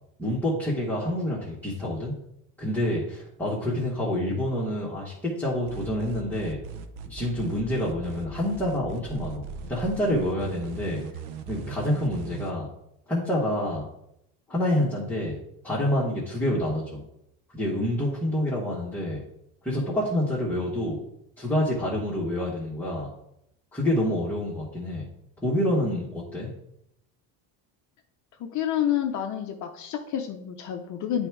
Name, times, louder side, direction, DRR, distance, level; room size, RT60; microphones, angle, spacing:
voice 1, 0.2-2.1 2.6-6.6 7.0-11.0 11.5-12.7 13.1-13.8 14.5-15.4 15.6-17.0 17.5-19.2 19.6-21.0 21.4-23.1 23.7-25.1 25.4-26.5, left 1 dB, 5° left, -7 dB, 1.2 m, -27 dB
sound 1, 5.7-12.5, right 6 dB, 85° right, 0.9 m, -39 dB
voice 2, 28.4-31.3, left 10 dB, 40° left, 4 dB, 0.6 m, -29 dB
8.9 x 3.5 x 4.6 m, 0.78 s
cardioid pair, 150°, 44 cm